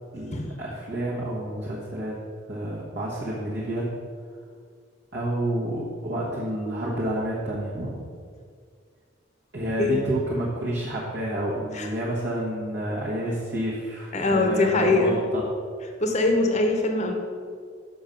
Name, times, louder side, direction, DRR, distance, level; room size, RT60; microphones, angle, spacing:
voice 1, 0.1-2.2 2.5-3.9 5.1-8.0 9.5-15.4, right 1 dB, 60° right, -6 dB, 1.3 m, -29 dB
voice 2, 14.1-15.2 16.0-17.1, left 2 dB, 35° left, 4 dB, 0.8 m, -22 dB
6.7 x 5.7 x 5.2 m, 2.1 s
head